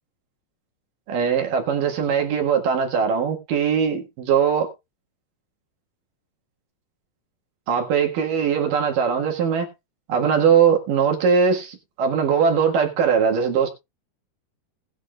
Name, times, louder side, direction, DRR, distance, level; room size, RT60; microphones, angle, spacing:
voice 1, 1.1-4.7 7.7-9.7 10.1-13.7, right 7 dB, 60° right, 2.9 m, -20 dB
19.0 x 8.5 x 2.4 m
omnidirectional pair, 4.8 m